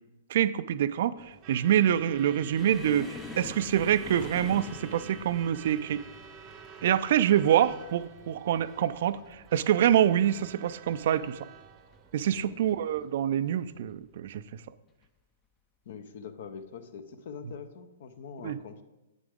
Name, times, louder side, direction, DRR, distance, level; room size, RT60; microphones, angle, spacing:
voice 1, 0.3-6.0 6.8-11.4 12.1-14.4 18.4-18.6, right 10 dB, 55° right, 15 dB, 0.3 m, -26 dB
Truck / Alarm, 1.2-13.1, right 7 dB, 35° right, 0.7 m, -50 dB
sound 1, 2.6-9.8 10.1-10.5 10.8-11.0 11.8-12.4 13.3-13.5 14.9-15.1, left 6 dB, 25° left, 0.5 m, -46 dB
voice 2, 12.3-12.8 15.9-18.8, left 6 dB, 60° left, 10 dB, 0.7 m, -44 dB
8.7 x 6.2 x 3.6 m, 1.0 s
figure-of-eight pair, 115°, 0 cm